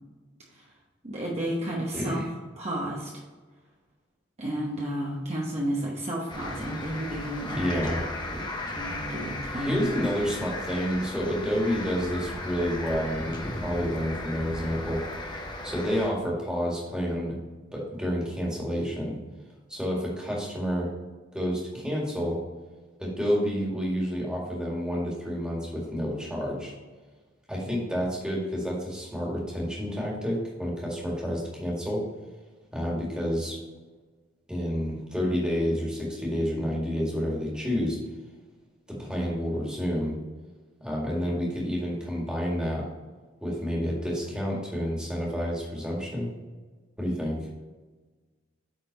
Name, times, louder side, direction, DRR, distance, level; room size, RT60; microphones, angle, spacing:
voice 1, 1.0-2.2 2.6-3.2 4.4-7.9 8.3-9.8, right 1 dB, 35° right, -3 dB, 1.1 m, -32 dB
voice 2, 1.9-2.2 7.5-8.0 9.5-17.3 17.7-19.2 19.7-20.9 21.3-22.4 23.0-26.7 27.5-32.0 32.7-33.6 34.5-38.0 39.0-40.2 40.8-42.9 43.4-46.3 47.0-47.4, equal, 5° right, -4 dB, 2.0 m, -29 dB
sound 1, 6.3-16.1, left 1 dB, 20° left, 1.0 m, -36 dB
9.1 x 4.2 x 4.0 m, 1.3 s
head